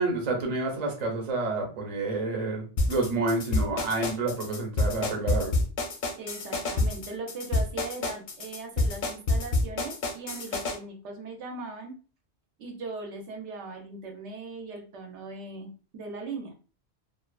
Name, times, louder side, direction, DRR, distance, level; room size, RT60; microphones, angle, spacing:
voice 1, 0.0-5.6, right 3 dB, 45° right, 1 dB, 0.7 m, -29 dB
sound 1, 2.8-10.8, left 2 dB, 55° left, 0.6 m, -28 dB
voice 2, 6.2-11.9 12.6-16.5, right 3 dB, 80° right, 3 dB, 0.9 m, -39 dB
2.6 x 2.3 x 2.2 m, 0.37 s
omnidirectional pair, 1.2 m